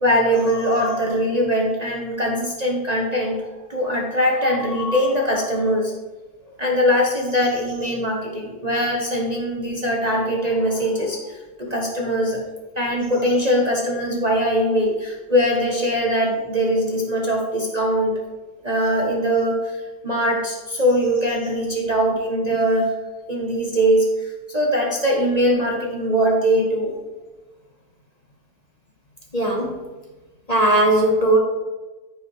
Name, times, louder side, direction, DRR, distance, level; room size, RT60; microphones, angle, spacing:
voice 1, 0.0-5.9 6.5-12.4 12.8-18.1 18.6-22.9 23.3-26.9, equal, 30° right, -2 dB, 1.0 m, -21 dB
voice 2, 29.3-29.8 30.5-31.4, right 1 dB, 30° left, -1 dB, 1.1 m, -18 dB
14.0 x 5.4 x 3.2 m, 1.2 s
omnidirectional pair, 1.7 m